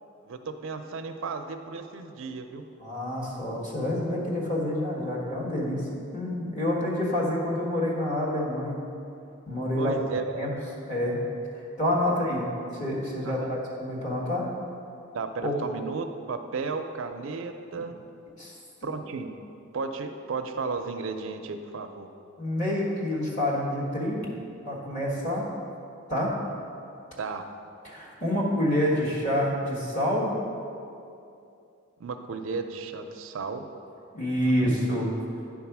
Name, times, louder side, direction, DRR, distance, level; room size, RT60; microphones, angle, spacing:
voice 1, 0.3-2.7 9.8-10.5 12.1-12.2 13.2-13.5 15.1-18.0 18.8-19.3 19.7-22.1 27.2-27.4 32.0-33.7 34.4-34.8, right 4 dB, 65° right, 7 dB, 0.4 m, -34 dB
voice 2, 2.8-5.9 6.1-8.8 9.5-9.9 10.3-10.5 10.9-11.2 11.5-12.4 12.7-14.5 15.4-15.5 17.7-17.8 18.4-18.5 18.8-18.9 22.4-24.3 24.6-25.5 26.1-26.4 27.8-30.3 34.1-35.1, left 1 dB, 35° left, -4 dB, 1.5 m, -28 dB
9.4 x 3.7 x 6.0 m, 2.6 s
head